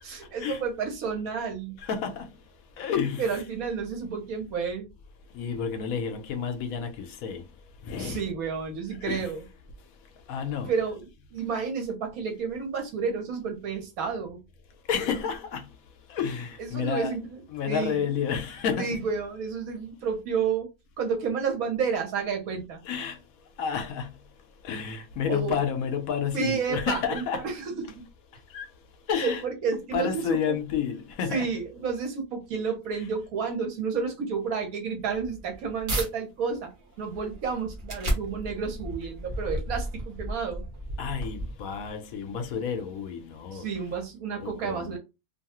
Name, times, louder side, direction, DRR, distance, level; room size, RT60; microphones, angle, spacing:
voice 1, 0.0-1.8 3.2-4.9 8.0-9.4 10.6-14.4 16.6-18.0 18.8-20.7 21.0-22.8 25.3-25.6 26.3-28.0 29.2-30.6 31.3-36.7 37.0-40.6 43.5-45.0, right 5 dB, 70° right, 1.3 m, -31 dB
voice 2, 1.8-2.3 2.8-3.4 5.3-7.4 7.9-8.2 9.0-9.3 10.3-10.7 14.9-15.6 16.1-17.2 17.5-19.0 22.9-23.2 23.6-24.1 24.6-27.4 28.5-28.6 29.1-29.4 29.9-31.5 41.0-43.7 44.4-45.0, left 7 dB, 70° left, 1.0 m, -30 dB
sound 1, 35.0-36.1 36.6-41.9, right 1 dB, 40° right, 0.9 m, -34 dB
2.7 x 2.3 x 2.9 m
omnidirectional pair, 1.6 m